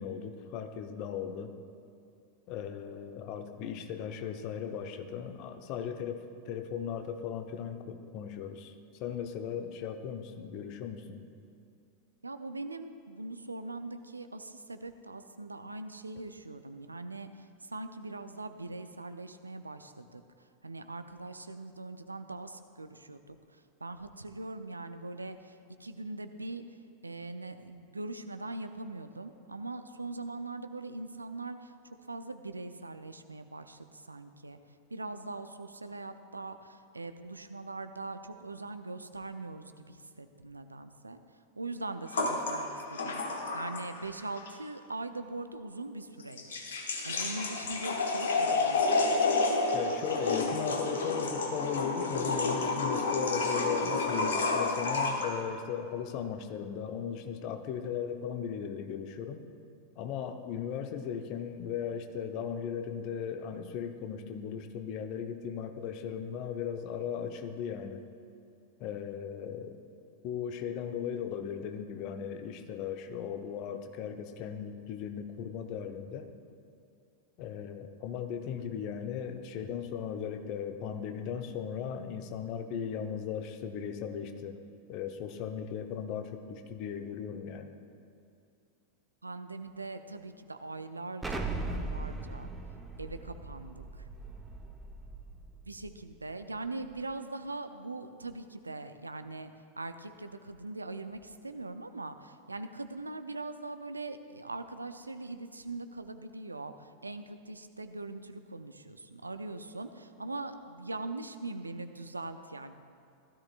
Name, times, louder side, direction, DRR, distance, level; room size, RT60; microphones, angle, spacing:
voice 1, 0.0-1.5 2.5-8.7 9.0-11.2 49.7-59.4 59.9-68.0 68.8-69.8 70.2-76.3 77.4-84.6 84.9-87.7, left 8 dB, 40° left, 7 dB, 0.9 m, -37 dB
voice 2, 12.2-17.3 17.6-20.2 20.6-23.4 23.8-26.6 27.0-34.6 34.9-41.2 41.6-43.2 43.5-46.6 47.0-49.2 89.2-92.5 93.0-94.0 95.7-112.7, right 2 dB, 80° right, 9 dB, 0.5 m, -41 dB
sound 1, 42.1-44.1 44.4-44.5 46.2-55.3, left 3 dB, 65° left, 1.3 m, -30 dB
Explosion, 91.2-95.9, right 2 dB, 10° right, 1.0 m, -39 dB
16.5 x 12.5 x 2.5 m, 2.5 s
figure-of-eight pair, 90°, 0 cm